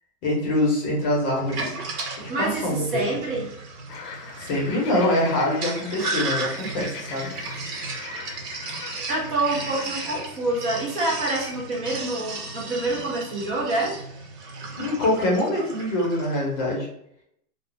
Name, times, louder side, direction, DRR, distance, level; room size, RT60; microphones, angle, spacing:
voice 1, 0.2-1.7 2.2-3.1 4.4-7.3 14.8-16.9, left 1 dB, 30° left, -3 dB, 0.6 m, -24 dB
Sink (filling or washing), 1.3-16.4, right 3 dB, 75° right, 0.9 m, -35 dB
voice 2, 2.3-3.5 8.7-8.8 9.1-13.9, right 2 dB, 35° right, -3 dB, 0.5 m, -27 dB
sound 1, 3.9-10.3, left 5 dB, 75° left, 0.7 m, -40 dB
2.4 x 2.0 x 3.1 m, 0.72 s
hypercardioid pair, 150°, 48 cm